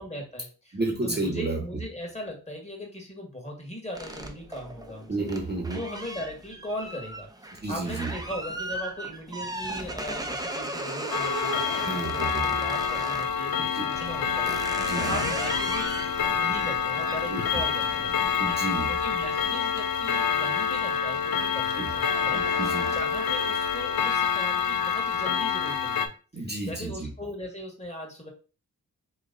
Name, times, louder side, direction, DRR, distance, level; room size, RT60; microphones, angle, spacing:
voice 1, 0.0-5.3 5.7-7.3 7.7-16.0 16.4-18.1 18.9-22.4 22.9-28.3, equal, 20° left, 1 dB, 1.7 m, -39 dB
voice 2, 0.7-1.6 5.1-5.8 7.6-8.1 11.7-12.5 13.6-13.8 14.8-15.2 17.3-17.4 18.4-18.9 21.8-21.9 22.3-22.9 26.3-27.1, right 2 dB, 30° right, 1 dB, 1.1 m, -31 dB
sound 1, 3.9-13.3 13.9-20.4 20.8-21.2 21.5-23.3, right 1 dB, 10° right, 0.7 m, -37 dB
Clock, 11.1-26.1, left 7 dB, 85° left, 0.6 m, -27 dB
sound 2, 13.9-19.5, left 4 dB, 55° left, 1.0 m, -45 dB
3.2 x 3.0 x 3.9 m, 0.35 s
cardioid pair, 55°, 35 cm